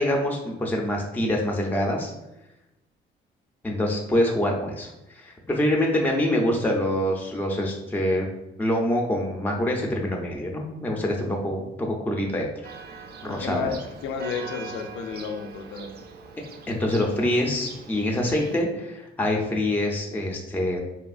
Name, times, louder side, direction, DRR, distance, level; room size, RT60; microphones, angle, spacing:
voice 1, 0.0-2.1 3.6-8.3 8.6-12.5 13.2-13.8 16.7-20.8, left 1 dB, 10° left, 0 dB, 0.4 m, -25 dB
Church bell, 12.6-18.6, right 5 dB, 55° right, 0.4 m, -42 dB
voice 2, 13.3-15.9, left 5 dB, 85° left, 6 dB, 0.4 m, -32 dB
2.9 x 2.4 x 2.4 m, 0.93 s
cardioid pair, 90°, 20 cm